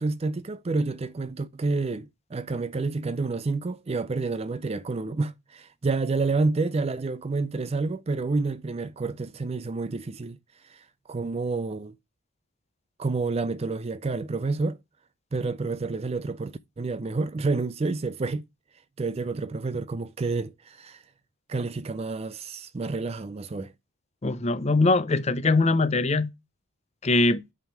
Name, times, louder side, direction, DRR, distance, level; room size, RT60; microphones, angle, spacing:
voice 1, 0.0-10.4 10.6-11.9 13.0-14.8 15.3-18.4 19.0-21.0 21.5-23.7, right 3 dB, 30° right, 0.4 m, -29 dB
voice 2, 24.2-26.3 27.0-27.4, left 3 dB, 30° left, 0.6 m, -22 dB
7.4 x 3.6 x 5.9 m
head